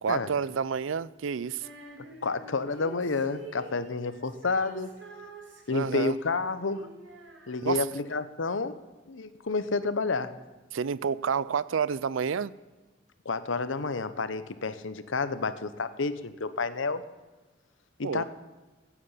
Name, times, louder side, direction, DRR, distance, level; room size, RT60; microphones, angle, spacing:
voice 1, 0.0-1.7 5.7-6.2 7.6-7.9 10.7-12.5 18.0-18.2, right 6 dB, 85° right, 19 dB, 0.4 m, -29 dB
Female singing, 1.6-8.1, right 1 dB, 65° right, 2.3 m, -47 dB
voice 2, 2.2-4.9 5.7-6.9 7.5-8.7 9.1-10.3 13.2-17.0 18.0-18.2, left 4 dB, 80° left, 13 dB, 0.9 m, -30 dB
16.0 x 8.7 x 5.6 m, 1.2 s
head